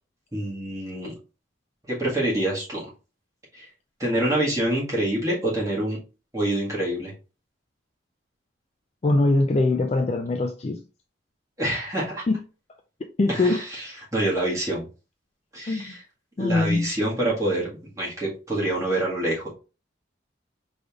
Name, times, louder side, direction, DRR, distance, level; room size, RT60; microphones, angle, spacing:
voice 1, 0.3-1.1 1.9-2.9 3.5-3.7 4.0-6.0 6.3-7.1 11.6-12.2 13.3-14.9 15.5-16.0 16.4-19.5, right 1 dB, 15° right, 1.6 m, -26 dB
voice 2, 9.0-10.8 12.3-12.4 13.2-13.6 15.7-16.0 16.4-16.9, left 2 dB, 35° left, 0.4 m, -22 dB
5.0 x 3.4 x 2.4 m
head